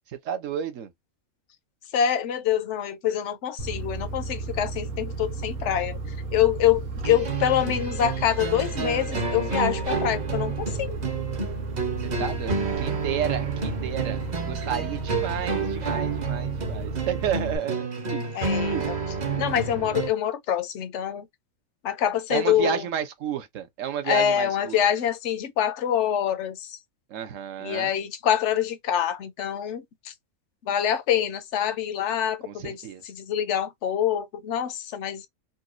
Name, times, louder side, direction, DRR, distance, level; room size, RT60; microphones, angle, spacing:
voice 1, 0.2-0.9 12.0-18.2 18.7-18.9 22.3-24.8 27.1-27.9 32.4-33.0, right 9 dB, 65° right, 1.1 m, -31 dB
voice 2, 1.9-6.0 6.3-11.0 18.3-19.0 19.4-21.3 21.8-22.8 24.0-26.8 27.6-30.1 30.6-35.2, left 10 dB, 65° left, 0.8 m, -25 dB
sound 1, 3.6-17.6, right 3 dB, 85° right, 1.5 m, -33 dB
sound 2, 7.0-20.1, right 4 dB, 40° right, 0.7 m, -30 dB
3.9 x 2.3 x 2.5 m
omnidirectional pair, 1.5 m